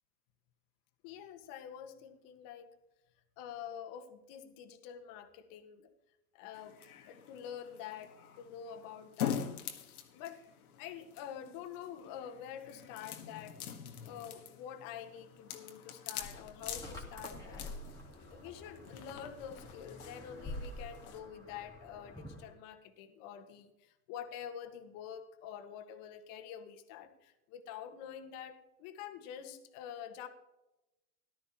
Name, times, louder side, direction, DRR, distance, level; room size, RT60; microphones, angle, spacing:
voice 1, 1.0-2.7 3.4-5.9 6.3-6.8 7.1-9.5 9.8-10.4 10.8-13.6 14.0-17.7 18.2-30.3, left 9 dB, 50° left, 7 dB, 1.6 m, -47 dB
sound 1, 6.5-21.2, left 9 dB, 85° left, 1.7 m, -45 dB
sound 2, 16.2-22.5, left 1 dB, 10° left, 2.5 m, -48 dB
14.5 x 12.5 x 3.0 m, 0.95 s
hypercardioid pair, 105°, 43 cm